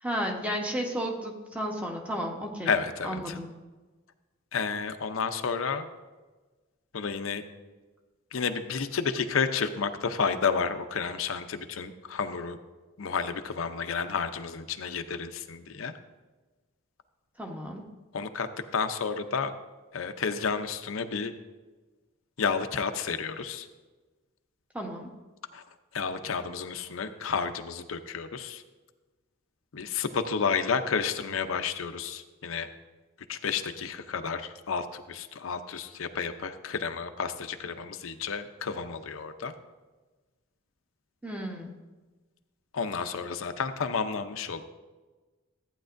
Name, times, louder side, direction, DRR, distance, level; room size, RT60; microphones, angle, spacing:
voice 1, 0.0-2.7 3.0-3.5 17.4-17.9 24.7-25.1 41.2-41.7, equal, 5° right, 1 dB, 1.0 m, -33 dB
voice 2, 2.6-3.4 4.5-5.9 6.9-7.4 8.3-12.6 13.0-15.9 18.1-19.5 19.9-21.3 22.4-23.7 25.5-25.6 25.9-28.6 29.7-32.7 33.3-39.5 42.7-44.6, left 5 dB, 80° left, 8 dB, 0.6 m, -31 dB
14.5 x 9.1 x 2.6 m, 1.2 s
head